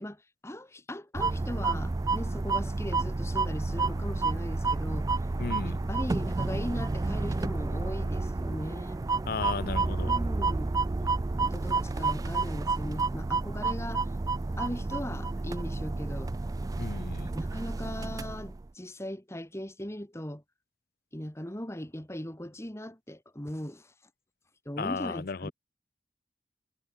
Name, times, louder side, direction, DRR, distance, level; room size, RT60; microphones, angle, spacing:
voice 1, 0.0-5.1 5.6-9.0 10.0-10.7 11.4-14.0 14.6-16.4 17.3-20.4 21.1-23.9 24.7-25.5, left 1 dB, 15° left, 2.2 m, -39 dB
sound 1, 1.1-18.6, right 3 dB, 20° right, 0.3 m, -30 dB
voice 2, 5.4-5.8 9.3-10.1 11.0-11.1 16.8-17.3 24.8-25.5, left 4 dB, 55° left, 0.6 m, -35 dB
head